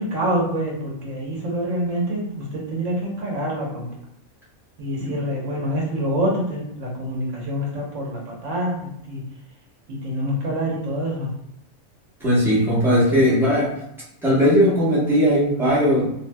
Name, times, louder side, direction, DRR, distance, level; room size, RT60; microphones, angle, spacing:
voice 1, 0.0-3.9 4.8-9.2 10.0-11.3, equal, 65° right, -3 dB, 1.3 m, -26 dB
voice 2, 12.2-13.8 14.2-16.1, equal, ahead, -9 dB, 0.9 m, -18 dB
2.8 x 2.8 x 2.2 m, 0.78 s
omnidirectional pair, 1.5 m